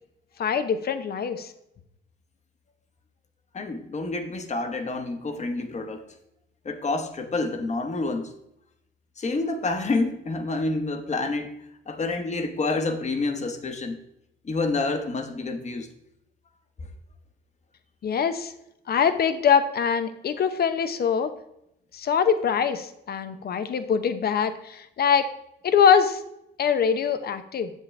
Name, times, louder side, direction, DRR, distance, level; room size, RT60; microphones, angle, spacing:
voice 1, 0.4-1.5 18.0-18.5 18.9-21.3 21.9-25.3 25.6-26.2 26.6-27.7, left 7 dB, 55° left, 11 dB, 0.8 m, -23 dB
voice 2, 3.5-6.1 6.6-8.3 9.2-11.6 11.9-14.0 14.4-15.9, left 3 dB, 35° left, 7 dB, 1.2 m, -28 dB
7.4 x 7.3 x 3.3 m, 0.80 s
cardioid pair, 90°, 20 cm